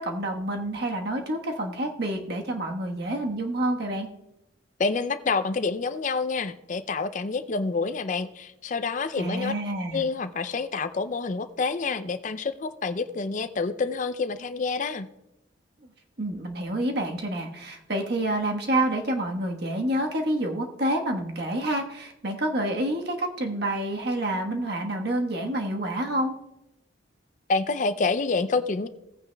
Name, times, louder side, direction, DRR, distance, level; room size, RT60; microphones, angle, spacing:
voice 1, 0.0-4.1 9.2-10.0 16.2-26.4, right 1 dB, 55° right, 2 dB, 1.3 m, -28 dB
voice 2, 4.8-9.5 9.9-15.1 27.5-28.9, left 4 dB, 40° left, 11 dB, 0.4 m, -28 dB
16.5 x 9.0 x 2.3 m, 0.89 s
head